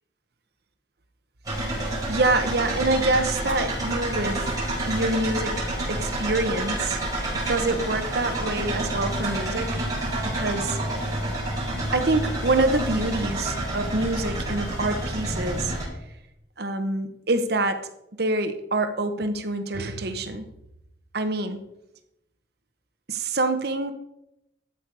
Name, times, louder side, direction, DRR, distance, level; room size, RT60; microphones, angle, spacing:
sound 1, 1.5-15.8, right 1 dB, 20° right, 4.7 m, -29 dB
voice 1, 2.1-4.5 4.9-7.0 7.5-9.8 10.2-10.8 11.9-15.7 16.6-20.5 21.1-21.6 23.1-23.9, right 2 dB, 60° right, 8 dB, 1.0 m, -26 dB
12.5 x 8.3 x 4.8 m, 0.84 s
head